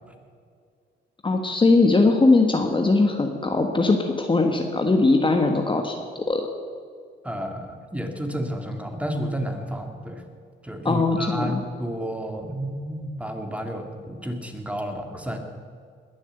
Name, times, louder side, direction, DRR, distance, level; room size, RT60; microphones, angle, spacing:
voice 1, 1.2-5.9 6.3-6.5 10.8-11.6, left 3 dB, 25° left, 4 dB, 1.4 m, -20 dB
voice 2, 7.2-10.2 10.6-15.4, equal, 5° right, 4 dB, 2.2 m, -31 dB
21.0 x 7.2 x 8.0 m, 2.1 s
cardioid pair, 90°, 20 cm